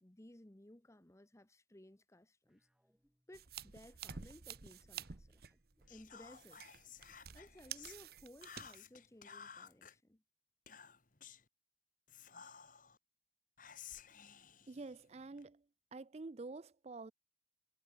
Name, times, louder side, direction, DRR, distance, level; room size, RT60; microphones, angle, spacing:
voice 1, 0.0-2.7 3.3-5.5 5.9-6.6 7.3-10.2, left 1 dB, 15° left, 0.8 m, -59 dB
sound 1, 2.4-7.8, equal, 5° right, 6.6 m, -79 dB
sound 2, 3.3-8.8, right 8 dB, 55° right, 1.0 m, -51 dB
Whispering, 5.9-8.0 8.4-9.9 10.7-11.5 12.1-13.0 13.6-15.5, left 7 dB, 45° left, 1.8 m, -55 dB
voice 2, 14.7-15.6 15.9-17.1, right 3 dB, 35° right, 0.4 m, -48 dB
head